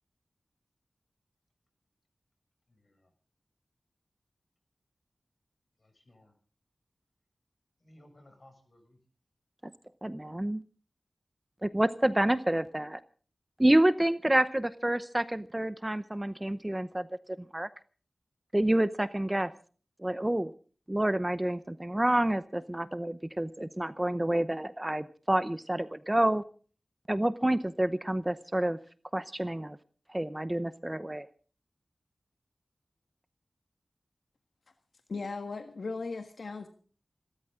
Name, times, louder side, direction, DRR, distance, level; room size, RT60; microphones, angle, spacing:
voice 1, 2.7-3.1 5.8-6.3 7.8-9.0, left 1 dB, 45° left, 6 dB, 6.7 m, -59 dB
voice 2, 10.0-10.6 11.6-13.0 13.6-17.1 17.5-17.7 18.5-19.5 20.0-20.5 20.9-26.4 27.1-28.8 29.1-29.8 30.1-31.3, right 1 dB, 15° right, 13 dB, 0.7 m, -28 dB
voice 3, 35.1-36.7, left 4 dB, 75° left, 7 dB, 1.5 m, -37 dB
27.0 x 13.0 x 3.7 m, 0.41 s
wide cardioid pair, 95°, 0 cm